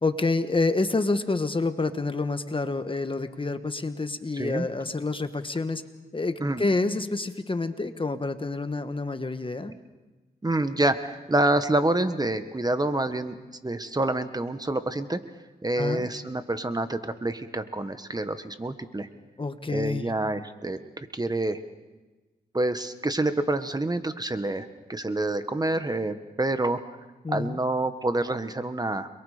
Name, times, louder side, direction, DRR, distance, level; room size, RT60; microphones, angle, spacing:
voice 1, 0.0-5.8 6.1-9.7 15.8-16.1 19.4-20.1 27.2-27.6, left 3 dB, 30° left, 9 dB, 1.4 m, -28 dB
voice 2, 4.3-4.7 6.4-6.6 10.4-13.3 13.6-15.2 15.6-19.1 19.7-21.6 22.5-26.8 27.3-29.1, right 2 dB, 25° right, 10 dB, 1.4 m, -27 dB
29.5 x 23.0 x 5.1 m, 1.2 s
cardioid pair, 65°, 17 cm